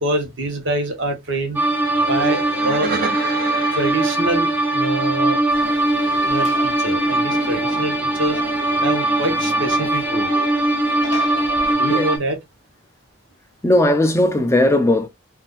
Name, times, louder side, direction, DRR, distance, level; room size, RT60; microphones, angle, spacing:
voice 1, 0.0-1.6 2.1-2.9 3.7-5.4 6.3-8.4 8.8-10.3 11.8-12.4, right 2 dB, 65° right, 1.0 m, -25 dB
sound 1, 1.6-12.2, right 1 dB, 10° right, 0.9 m, -20 dB
sound 2, 1.9-5.6 6.9-11.6, right 4 dB, 45° right, 0.4 m, -34 dB
Conversation / Crowd, 5.5-11.7, left 2 dB, 60° left, 0.7 m, -36 dB
voice 2, 13.6-15.1, left 1 dB, 15° left, 0.5 m, -17 dB
3.7 x 2.6 x 2.4 m
head